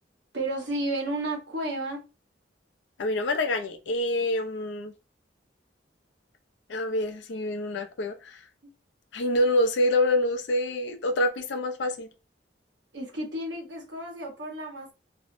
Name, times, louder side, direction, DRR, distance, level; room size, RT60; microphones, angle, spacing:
voice 1, 0.3-2.0 12.9-14.9, right 1 dB, 70° right, 1.0 m, -32 dB
voice 2, 3.0-4.9 6.7-8.4 9.1-12.1, left 1 dB, 75° left, 0.4 m, -26 dB
2.6 x 2.0 x 2.6 m
head